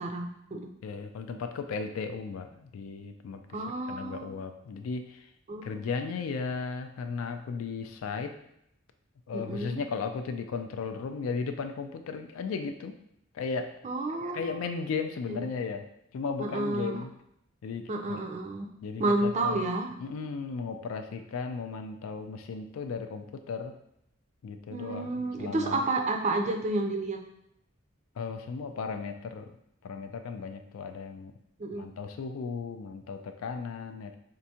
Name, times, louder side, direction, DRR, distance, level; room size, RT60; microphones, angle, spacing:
voice 1, 0.0-0.7 3.5-4.3 5.5-5.8 9.3-9.8 13.8-14.5 15.3-15.5 16.4-17.0 17.9-18.7 19.0-19.9 24.7-27.2 31.6-31.9, right 2 dB, 35° right, 4 dB, 0.4 m, -30 dB
voice 2, 0.8-3.6 3.9-5.3 5.6-8.4 9.3-12.9 13.3-13.7 14.3-15.9 16.1-17.1 17.6-18.2 18.8-19.6 20.0-23.8 24.4-25.8 28.2-29.6 29.8-31.3 31.7-34.2, left 5 dB, 80° left, 7 dB, 0.3 m, -35 dB
4.5 x 2.5 x 2.7 m, 0.77 s
head